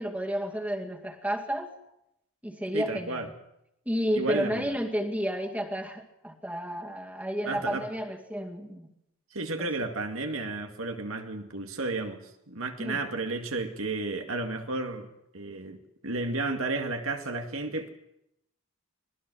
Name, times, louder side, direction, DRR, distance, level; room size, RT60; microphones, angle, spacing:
voice 1, 0.0-1.7 2.4-3.3 3.9-8.9 9.6-9.7 12.8-13.0, equal, 5° right, 2 dB, 2.3 m, -31 dB
voice 2, 2.7-3.3 4.2-4.7 7.5-7.9 9.3-12.2 12.5-15.1 15.3-17.9, right 2 dB, 70° right, 4 dB, 2.2 m, -32 dB
25.5 x 19.5 x 6.3 m, 0.83 s
head